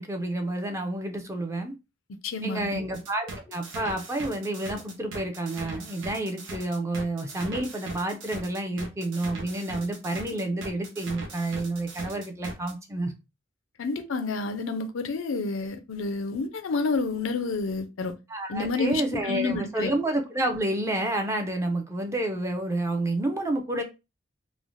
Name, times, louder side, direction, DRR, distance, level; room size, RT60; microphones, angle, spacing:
voice 1, 0.0-1.7 2.4-13.1 18.3-23.8, right 1 dB, 15° right, 0.4 m, -29 dB
voice 2, 2.2-2.8 13.8-18.1 18.5-19.9, left 3 dB, 85° left, 0.5 m, -29 dB
sound 1, 2.9-12.7, right 2 dB, 70° right, 0.8 m, -39 dB
3.1 x 2.1 x 2.4 m
head